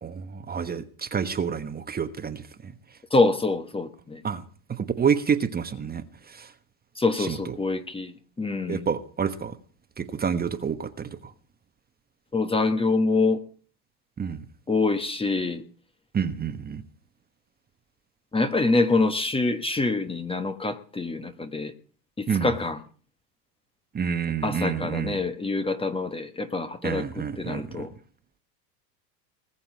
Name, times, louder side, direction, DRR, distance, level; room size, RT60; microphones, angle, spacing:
voice 1, 0.0-2.7 4.2-4.4 4.8-6.5 7.2-7.5 8.7-9.6 10.0-11.3 14.2-14.4 16.1-16.8 22.3-22.5 23.9-25.2 26.8-27.9, right 7 dB, 20° right, 1.2 m, -28 dB
voice 2, 3.1-4.2 7.0-8.9 12.3-13.4 14.7-15.6 18.3-21.7 22.2-22.8 24.4-27.9, left 3 dB, 10° left, 1.2 m, -25 dB
20.0 x 7.2 x 8.3 m
hypercardioid pair, 110°, 50 cm